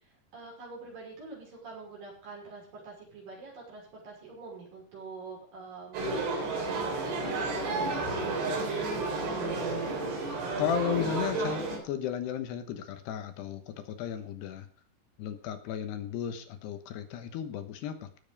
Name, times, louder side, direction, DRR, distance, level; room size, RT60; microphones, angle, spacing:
voice 1, 0.3-10.1, right 4 dB, 55° right, -2 dB, 7.4 m, -45 dB
sound 1, 5.9-11.8, right 3 dB, 85° right, 5.6 m, -31 dB
voice 2, 10.6-14.7 15.2-18.2, left 9 dB, 80° left, 9 dB, 3.3 m, -34 dB
18.0 x 7.4 x 5.3 m, 0.43 s
omnidirectional pair, 4.8 m